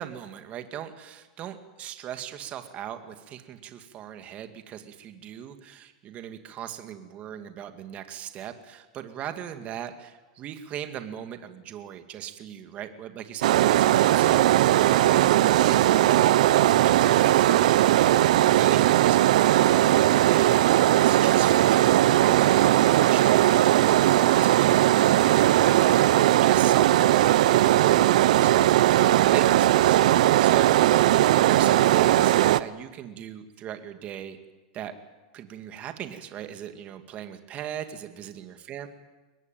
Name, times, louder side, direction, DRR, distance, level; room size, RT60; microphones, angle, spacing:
voice 1, 0.0-14.5 14.8-31.0 31.3-34.4 34.7-34.9 35.3-38.9, right 10 dB, 35° right, 8 dB, 2.2 m, -38 dB
sound 1, 13.4-32.6, right 14 dB, 75° right, 0.8 m, -19 dB
23.0 x 20.0 x 9.2 m, 1.2 s
supercardioid pair, 130°, 4 cm